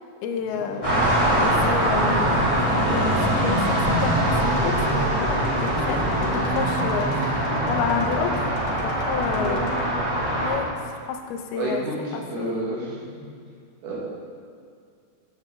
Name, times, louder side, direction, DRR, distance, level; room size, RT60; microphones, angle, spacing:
voice 1, 0.2-2.3 2.6-9.9 10.4-10.7 11.1-11.8 12.1-12.8, left 6 dB, 90° left, 4 dB, 2.6 m, -30 dB
sound 1, 0.8-10.5, right 1 dB, 15° right, 1.3 m, -23 dB
voice 2, 0.8-1.1 9.3-9.6 11.6-13.1 13.8-14.0, right 2 dB, 80° right, -4 dB, 3.4 m, -30 dB
sound 2, 2.8-9.9, left 1 dB, 65° left, 2.5 m, -35 dB
8.6 x 7.5 x 3.6 m, 2.2 s
omnidirectional pair, 4.3 m